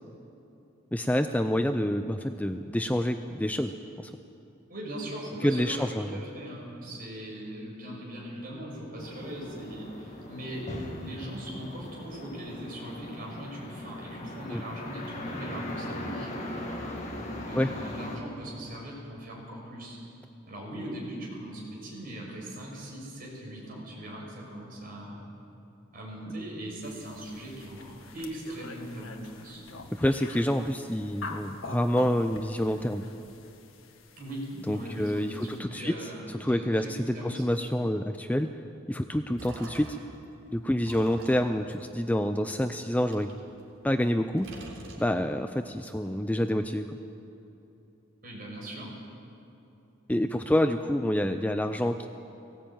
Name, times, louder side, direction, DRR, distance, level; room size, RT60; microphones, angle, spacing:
voice 1, 0.9-4.1 5.4-6.2 14.5-14.6 17.5-17.7 29.9-33.0 34.7-36.0 36.3-38.5 38.9-40.0 40.5-43.3 43.8-44.5 45.0-46.9 50.1-52.1, left 1 dB, 5° left, 8 dB, 0.5 m, -27 dB
voice 2, 4.7-16.3 17.4-20.0 20.5-25.2 25.9-29.6 34.2-37.4 48.2-48.9, right 1 dB, 45° right, -2 dB, 6.2 m, -40 dB
sound 1, 9.0-18.2, left 1 dB, 35° left, 2.5 m, -39 dB
sound 2, 26.8-35.6, left 3 dB, 80° left, 1.7 m, -46 dB
sound 3, 39.2-40.2 40.8-42.6 43.1-44.1 44.4-45.5, right 2 dB, 75° right, 3.6 m, -46 dB
19.0 x 16.5 x 9.0 m, 2.9 s
head